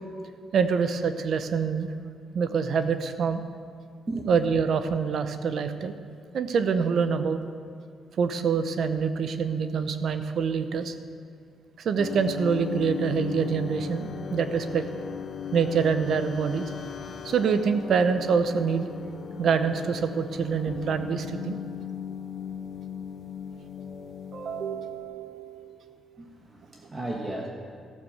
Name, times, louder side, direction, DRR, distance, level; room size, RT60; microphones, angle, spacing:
voice 1, 0.5-1.9 2.3-3.4 4.3-5.9 6.3-7.4 8.2-10.9 11.8-14.8 15.5-16.7 17.2-18.9 19.4-21.6 24.3-26.0, right 6 dB, 60° right, 10 dB, 0.8 m, -26 dB
sound 1, 12.0-25.1, left 8 dB, 55° left, 0.8 m, -38 dB
voice 2, 26.2-27.5, right 2 dB, 30° right, 0 dB, 1.5 m, -34 dB
14.0 x 7.0 x 6.5 m, 2.2 s
cardioid pair, 90°, 0 cm